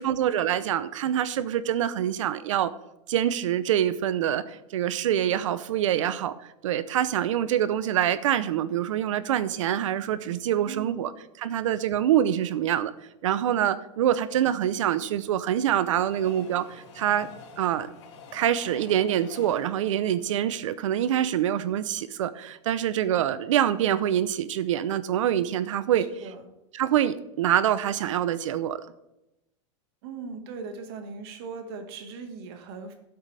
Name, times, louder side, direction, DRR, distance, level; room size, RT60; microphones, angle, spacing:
voice 1, 0.0-2.7 3.1-6.3 6.6-11.1 11.4-12.9 13.2-17.3 17.6-17.9 18.3-26.1 26.7-28.8, right 10 dB, 90° right, 15 dB, 0.8 m, -25 dB
voice 2, 10.7-11.0 26.0-26.4 30.0-32.9, right 5 dB, 55° right, 5 dB, 1.9 m, -39 dB
Train, 14.7-21.6 22.1-22.2 22.4-22.5, left 5 dB, 65° left, 2.8 m, -49 dB
16.5 x 8.0 x 3.4 m, 0.92 s
supercardioid pair, 160°, 16 cm